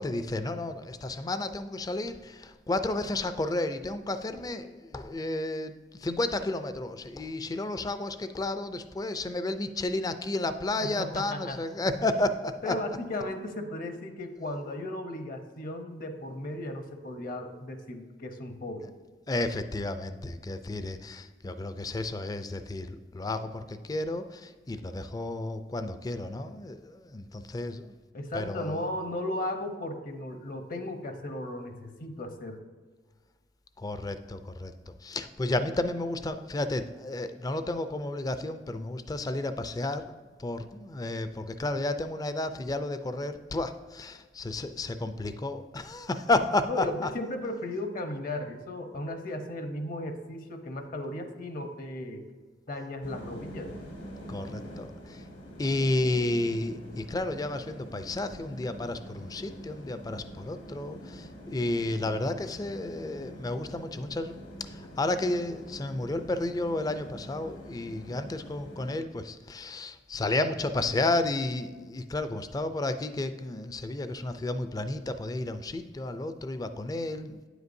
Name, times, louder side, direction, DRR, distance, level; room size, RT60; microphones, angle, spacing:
voice 1, 0.0-5.7 6.0-12.7 19.3-27.9 28.3-28.8 33.8-34.7 35.0-40.0 40.4-47.1 54.3-55.2 55.6-77.5, left 2 dB, 20° left, 10 dB, 0.4 m, -32 dB
voice 2, 10.8-11.6 12.6-18.9 28.1-32.6 46.7-52.2 52.7-53.7, left 1 dB, 50° left, 6 dB, 0.8 m, -36 dB
sound 1, 53.0-69.0, equal, 80° left, 1.8 m, -45 dB
9.6 x 8.0 x 2.6 m, 1.5 s
head